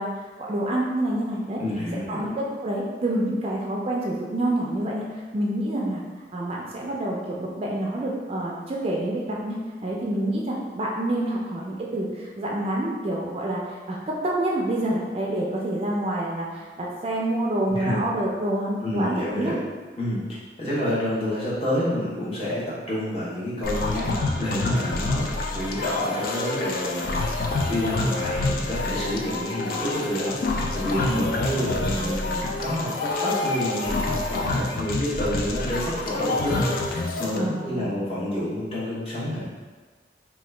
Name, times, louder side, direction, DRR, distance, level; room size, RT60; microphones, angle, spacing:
voice 1, 0.0-1.6 2.1-6.0 6.3-19.5 31.1-31.3 37.3-38.0, right 1 dB, 35° right, -3 dB, 0.4 m, -27 dB
voice 2, 1.6-2.3 17.7-18.0 18.8-19.5 20.0-20.2 20.6-25.3 25.5-27.2 27.7-30.4 30.7-36.6 36.9-39.4, left 1 dB, 35° left, -9 dB, 0.9 m, -28 dB
sound 1, 23.6-37.4, left 2 dB, 55° left, 0.3 m, -27 dB
2.8 x 2.3 x 3.2 m, 1.4 s
head